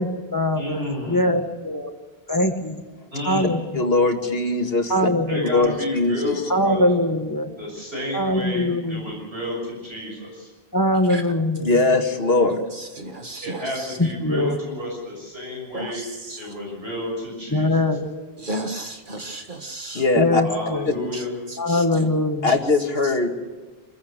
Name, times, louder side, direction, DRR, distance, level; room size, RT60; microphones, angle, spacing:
voice 1, 0.0-1.9 2.3-2.8 3.3-3.6 4.9-5.7 6.5-7.5 8.1-9.0 10.7-11.8 14.0-14.5 17.5-18.0 20.1-20.8 21.6-22.5, left 1 dB, 20° left, 6 dB, 1.6 m, -22 dB
voice 2, 0.6-1.3 3.1-3.6 5.3-6.8 7.6-10.5 13.4-16.0 16.4-17.8 20.4-21.3, left 1 dB, 80° right, -1 dB, 6.8 m, -31 dB
voice 3, 3.7-5.1 5.5-6.4 11.6-12.6 19.9-20.4 22.4-23.3, left 3 dB, 70° left, 4 dB, 2.2 m, -21 dB
voice 4, 12.5-14.0 15.7-16.5 18.4-20.1 21.1-22.1 22.5-22.6 23.0-23.1, right 1 dB, 55° right, 5 dB, 1.8 m, -34 dB
26.0 x 15.5 x 6.6 m, 1.3 s
omnidirectional pair, 1.0 m